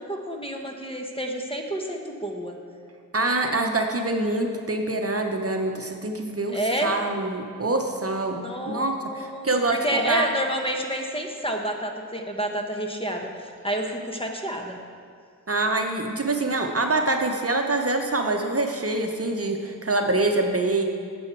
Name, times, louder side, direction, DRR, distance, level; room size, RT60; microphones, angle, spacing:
voice 1, 0.0-2.6 6.5-6.9 8.4-14.8, right 1 dB, 15° left, 2 dB, 1.0 m, -29 dB
voice 2, 3.1-10.3 15.5-20.9, right 2 dB, 45° right, 3 dB, 0.8 m, -25 dB
9.5 x 7.0 x 4.5 m, 2.2 s
wide cardioid pair, 45°, 34 cm